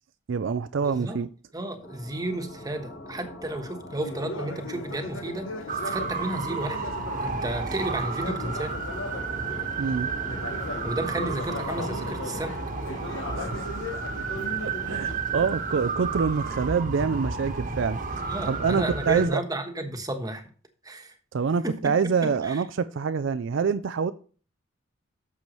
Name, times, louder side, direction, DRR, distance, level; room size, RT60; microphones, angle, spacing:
voice 1, 0.3-1.3 9.8-10.1 13.4-13.7 14.6-18.0 18.4-19.4 21.3-24.1, right 5 dB, 65° right, 0.4 m, -26 dB
voice 2, 0.8-1.2 1.5-6.9 7.2-8.8 10.8-12.6 18.2-20.4 20.8-21.2 21.6-21.9 22.2-22.6, right 1 dB, 20° right, 1.2 m, -33 dB
sound 1, 1.8-13.6, left 1 dB, 65° left, 3.8 m, -43 dB
Conversation, 4.0-9.8 10.2-15.1, left 2 dB, 80° left, 0.9 m, -38 dB
sound 2, 5.7-19.3, right 4 dB, 45° right, 1.2 m, -32 dB
11.5 x 7.0 x 3.1 m
head